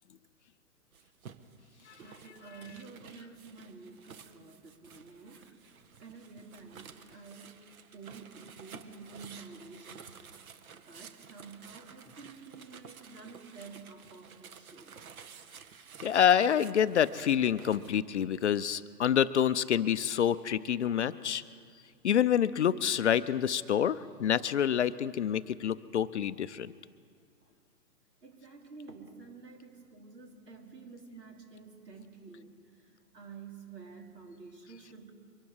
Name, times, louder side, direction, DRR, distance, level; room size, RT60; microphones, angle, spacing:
sound 1, 0.9-17.9, right 7 dB, 60° right, 1.2 m, -52 dB
voice 1, 2.0-5.5 6.0-7.6 7.9-10.1 10.7-15.0 28.2-32.5 33.1-35.1, right 4 dB, 80° right, 2 dB, 2.9 m, -50 dB
voice 2, 16.0-21.4 22.0-26.7, left 9 dB, 50° left, 14 dB, 0.4 m, -27 dB
23.5 x 12.0 x 4.8 m, 2.2 s
hypercardioid pair, 135°, 48 cm